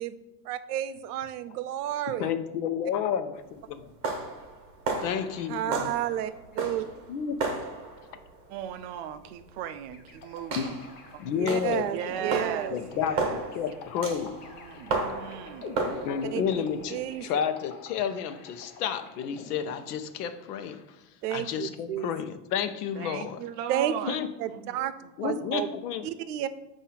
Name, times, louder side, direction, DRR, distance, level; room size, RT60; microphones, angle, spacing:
voice 1, 0.5-2.3 5.5-6.8 11.4-12.8 16.3-16.6 16.9-17.3 21.2-22.1 23.7-24.1 24.4-24.9 25.2-25.7 26.0-26.5, right 11 dB, 85° right, 13 dB, 0.7 m, -31 dB
voice 2, 2.1-3.9 5.0-5.9 7.1-7.5 10.5-10.7 11.2-11.9 12.7-14.4 16.0-20.8 21.3-23.4 24.1-24.3 25.2-26.1, left 8 dB, 80° left, 9 dB, 0.8 m, -31 dB
sound 1, 3.4-17.1, right 3 dB, 25° right, 1.1 m, -35 dB
voice 3, 8.5-10.8 11.9-13.5 14.4-15.7 23.0-24.2 24.5-25.1 25.4-25.5, right 10 dB, 45° right, 10 dB, 0.5 m, -38 dB
sound 2, 9.9-20.4, left 4 dB, 25° left, 0.4 m, -46 dB
7.4 x 2.7 x 5.6 m, 0.97 s
supercardioid pair, 160°, 46 cm